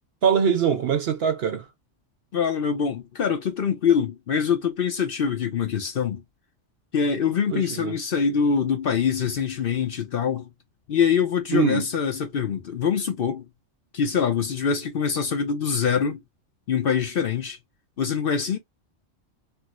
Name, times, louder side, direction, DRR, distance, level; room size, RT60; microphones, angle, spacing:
voice 1, 0.2-1.7 7.5-8.0 11.5-11.9, right 7 dB, 60° right, 0.8 m, -23 dB
voice 2, 2.3-6.2 6.9-10.5 10.9-13.5 13.9-16.2 16.7-17.6 18.0-18.6, left 7 dB, 55° left, 0.8 m, -24 dB
4.7 x 2.0 x 2.3 m
omnidirectional pair, 1.3 m